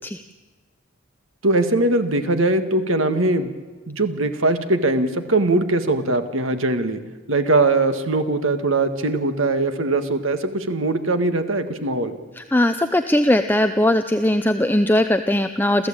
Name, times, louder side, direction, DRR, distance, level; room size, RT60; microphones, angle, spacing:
voice 1, 1.4-3.5 3.9-7.0 7.3-12.2, right 2 dB, 85° right, 8 dB, 1.9 m, -21 dB
voice 2, 12.4-15.9, left 1 dB, 10° left, 8 dB, 0.6 m, -19 dB
28.0 x 14.5 x 8.8 m, 1.3 s
head